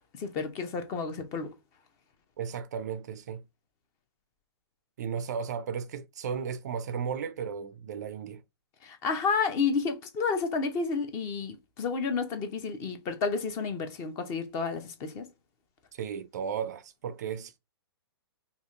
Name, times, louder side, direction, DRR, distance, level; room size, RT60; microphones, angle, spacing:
voice 1, 0.2-1.5 8.8-15.3, left 5 dB, 25° left, 0.6 m, -31 dB
voice 2, 2.4-3.4 5.0-8.4 15.9-17.6, right 7 dB, 40° right, 0.4 m, -35 dB
4.9 x 2.5 x 2.3 m
figure-of-eight pair, 120°, 13 cm